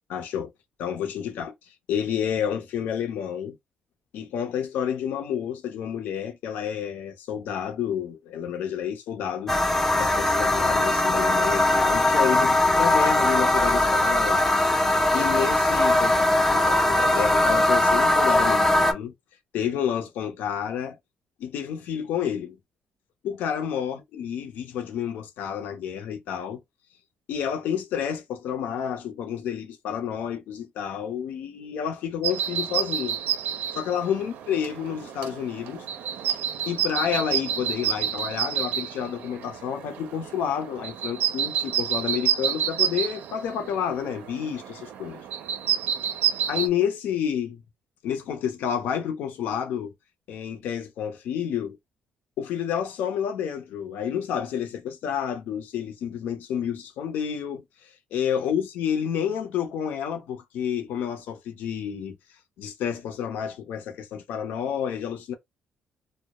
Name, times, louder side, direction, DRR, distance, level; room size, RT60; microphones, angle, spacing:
voice 1, 0.1-0.5 0.8-3.6 4.1-14.4 15.1-19.1 19.5-21.0 21.4-22.6 23.2-26.6 27.3-33.2 33.7-35.9 36.7-45.2 46.5-47.6 48.0-49.9 50.3-51.8 52.4-62.2 62.6-65.3, left 8 dB, 85° left, 0.6 m, -30 dB
sound 1, 9.5-18.9, left 1 dB, 10° left, 0.5 m, -20 dB
sound 2, 32.2-46.7, right 9 dB, 85° right, 0.4 m, -29 dB
2.2 x 2.1 x 2.8 m
cardioid pair, 110°, 3 cm